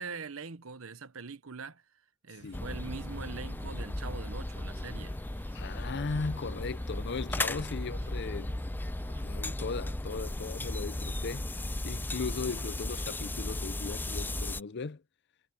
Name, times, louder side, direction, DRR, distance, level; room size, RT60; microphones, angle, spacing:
voice 1, 0.0-1.8 2.2-5.2, right 4 dB, 80° right, 1.0 m, -42 dB
sound 1, 2.4-9.3, right 2 dB, 65° right, 2.8 m, -56 dB
sound 2, 2.5-14.6, left 1 dB, 10° left, 0.5 m, -36 dB
voice 2, 5.5-8.6 9.2-11.5 11.8-15.0, left 4 dB, 55° left, 0.6 m, -37 dB
head